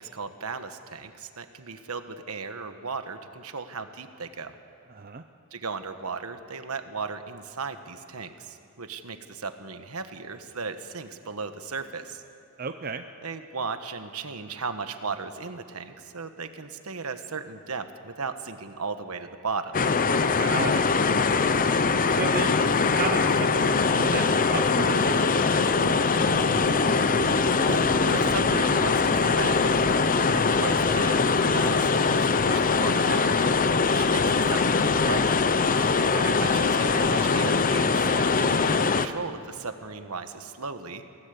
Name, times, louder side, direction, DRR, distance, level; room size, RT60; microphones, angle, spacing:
voice 1, 0.0-4.5 5.5-12.2 13.2-19.7 27.6-29.8 30.3-33.5 33.8-35.4 36.4-41.0, right 4 dB, 70° right, 8 dB, 1.3 m, -36 dB
voice 2, 4.9-5.2 12.6-13.0 20.4-21.6 22.1-22.6 22.9-26.3 36.0-36.4, right 4 dB, 40° right, 7 dB, 0.7 m, -34 dB
sound 1, 19.7-39.1, left 4 dB, 40° left, 0.7 m, -22 dB
sound 2, 26.1-36.2 36.5-38.2, equal, ahead, 3.9 m, -38 dB
24.0 x 17.5 x 8.4 m, 2.8 s
head